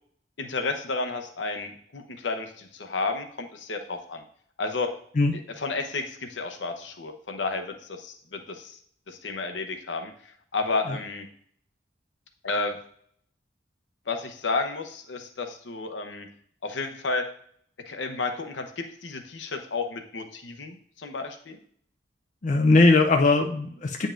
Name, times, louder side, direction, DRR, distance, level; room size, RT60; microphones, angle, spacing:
voice 1, 0.4-4.2 4.6-4.9 5.6-8.8 9.1-10.1 10.5-11.3 12.4-12.8 14.1-16.3 16.6-17.2 17.9-21.6, left 3 dB, 80° left, 6 dB, 0.9 m, -31 dB
voice 2, 22.4-24.1, left 3 dB, 40° left, 3 dB, 0.5 m, -20 dB
8.7 x 5.2 x 2.6 m, 0.62 s
head